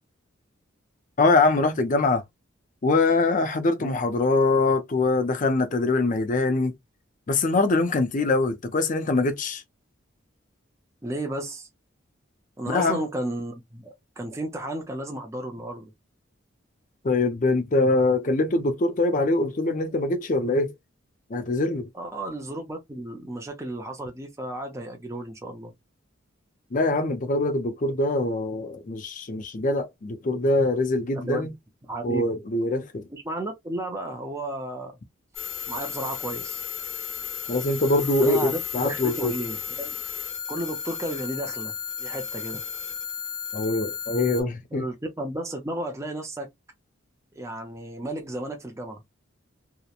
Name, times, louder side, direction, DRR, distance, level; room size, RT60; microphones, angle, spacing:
voice 1, 1.2-2.2 2.8-6.7 7.3-9.6 12.7-13.0 17.0-20.7 21.3-21.9 26.7-31.5 32.0-33.1 37.5-39.3 43.5-44.9, left 2 dB, 40° left, 0.5 m, -23 dB
voice 2, 11.0-11.7 12.6-15.9 21.9-25.7 31.1-31.5 31.9-32.4 33.1-35.0 35.7-36.6 38.2-40.0 40.5-42.6 44.7-46.5 47.3-49.0, right 1 dB, 15° right, 0.4 m, -33 dB
sound 1, 35.3-44.4, left 8 dB, 75° left, 0.8 m, -34 dB
2.9 x 2.1 x 2.3 m
head